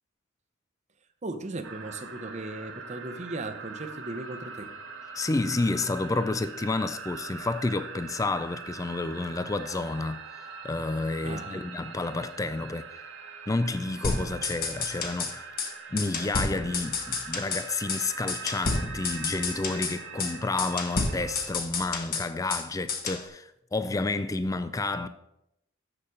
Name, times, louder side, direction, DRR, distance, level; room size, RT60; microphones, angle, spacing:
voice 1, 1.2-4.7 11.2-11.7, right 2 dB, 35° right, 0.8 m, -37 dB
sound 1, 1.6-21.5, right 4 dB, 70° right, 1.3 m, -42 dB
voice 2, 5.2-10.2 10.6-12.9 13.5-15.5 15.9-25.1, left 3 dB, 15° left, 0.3 m, -30 dB
sound 2, 14.0-15.3 15.6-15.7 16.0-17.6 17.9-18.0 18.3-19.9 20.2-20.3 20.6-22.6 22.9-23.2, left 4 dB, 45° left, 1.2 m, -30 dB
7.1 x 6.8 x 6.4 m
head